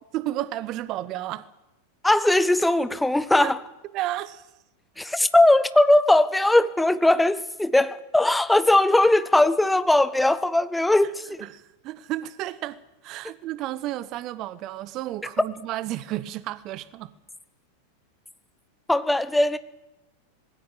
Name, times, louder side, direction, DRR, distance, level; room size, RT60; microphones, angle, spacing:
voice 1, 0.1-1.5 3.4-3.5 3.9-4.5 11.4-17.1, right 14 dB, 40° right, 0.8 m, -32 dB
voice 2, 2.0-3.6 5.0-11.4 18.9-19.6, left 1 dB, 5° left, 0.9 m, -19 dB
20.0 x 16.0 x 9.1 m
figure-of-eight pair, 90°, 0 cm